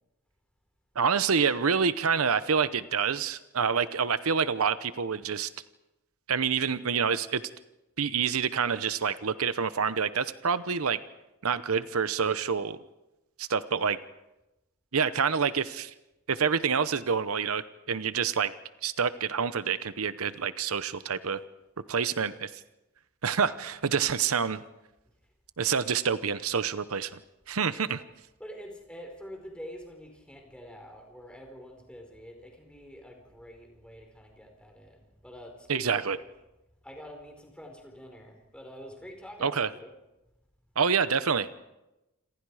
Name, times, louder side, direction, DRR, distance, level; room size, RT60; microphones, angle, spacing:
voice 1, 1.0-5.5 6.3-7.4 8.0-11.0 11.4-12.8 13.4-14.0 14.9-15.9 16.3-18.5 18.8-21.4 21.9-22.5 23.2-24.6 25.6-27.2 27.5-28.0 35.7-36.2 39.4-39.7 40.8-41.5, right 6 dB, 75° right, 14 dB, 0.8 m, -27 dB
voice 2, 28.4-36.2 36.8-39.9, equal, 5° left, 3 dB, 4.7 m, -46 dB
27.5 x 26.5 x 4.9 m, 0.96 s
head